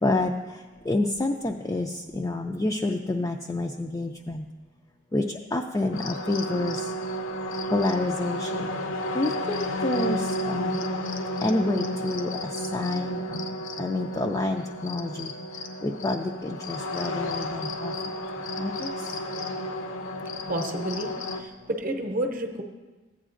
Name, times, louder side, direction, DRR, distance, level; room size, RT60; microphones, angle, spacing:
voice 1, 0.0-0.3 0.9-4.4 5.1-5.2 5.5-6.8 7.7-8.7 9.1-10.8 11.4-12.3 12.7-13.5 13.8-15.3 15.8-17.9 18.6-18.9, left 2 dB, 15° left, 2 dB, 0.3 m, -28 dB
sound 1, 5.9-21.4, left 1 dB, 75° left, 0.7 m, -32 dB
voice 2, 20.5-22.6, right 1 dB, 45° right, 4 dB, 0.7 m, -30 dB
14.5 x 9.0 x 2.5 m, 1.3 s
head